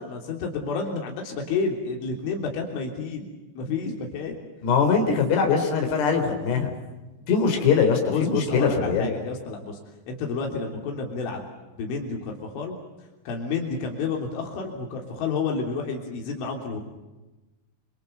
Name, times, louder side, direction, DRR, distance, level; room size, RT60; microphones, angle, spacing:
voice 1, 0.0-3.3 3.6-4.4 8.1-9.8 10.1-11.5 11.8-12.8 13.3-16.8, left 4 dB, 85° left, 1 dB, 5.8 m, -30 dB
voice 2, 4.6-6.7 7.3-9.1, left 5 dB, 65° left, 3 dB, 6.1 m, -22 dB
27.0 x 27.0 x 7.0 m, 1.1 s
omnidirectional pair, 5.3 m